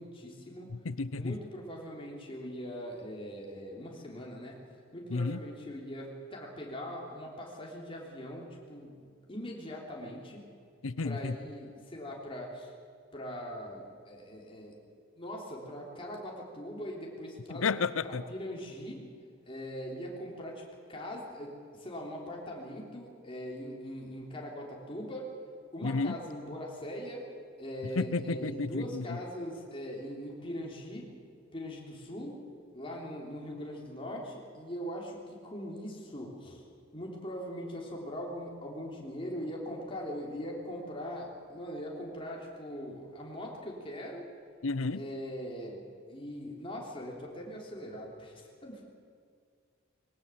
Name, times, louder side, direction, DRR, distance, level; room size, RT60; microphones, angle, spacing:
voice 1, 0.0-0.7 1.1-4.6 4.9-10.4 11.0-12.7 13.1-14.8 15.2-17.7 18.0-19.0 19.5-20.6 20.9-25.3 25.7-27.3 27.6-31.1 31.5-32.4 32.7-36.6 36.9-44.2 44.9-45.8 46.1-48.9, equal, 25° left, -2 dB, 3.5 m, -41 dB
voice 2, 0.7-1.4 5.1-5.4 10.8-11.4 17.5-18.2 25.8-26.2 28.0-29.2 44.6-45.0, left 4 dB, 80° left, 17 dB, 0.7 m, -32 dB
21.0 x 18.5 x 7.4 m, 2.2 s
head